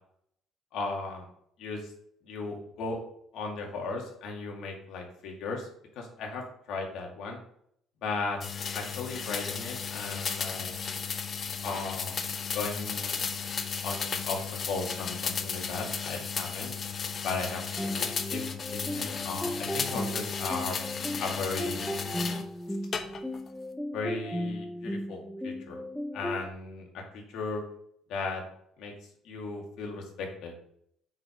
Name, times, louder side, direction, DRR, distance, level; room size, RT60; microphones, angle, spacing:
voice 1, 0.7-1.3 1.6-1.9 2.2-3.0 3.3-5.7 5.9-7.4 8.0-8.4 8.7-10.8 11.6-12.2 12.5-13.2 13.8-16.7 17.2-20.8 21.2-21.9 23.9-25.8 26.1-27.6 28.1-28.4 28.8-30.5, left 3 dB, 70° left, 0 dB, 2.3 m, -36 dB
sound 1, 8.4-22.5 22.9-23.5, left 6 dB, 40° left, 0.9 m, -34 dB
sound 2, 17.8-26.5, equal, ahead, 0.7 m, -36 dB
7.4 x 4.8 x 5.2 m, 0.70 s
cardioid pair, 95°, 0 cm